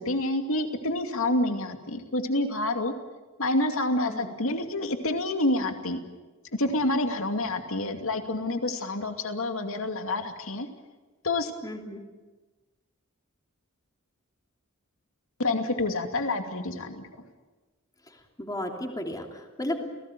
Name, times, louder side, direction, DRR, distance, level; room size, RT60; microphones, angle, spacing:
voice 1, 0.0-2.9 3.4-6.0 6.5-10.7 11.2-11.5 15.4-17.1, left 2 dB, 70° left, 6 dB, 2.6 m, -28 dB
voice 2, 11.6-12.0 18.1-19.8, left 1 dB, 15° left, 2 dB, 3.1 m, -34 dB
29.0 x 19.0 x 9.3 m, 1.2 s
head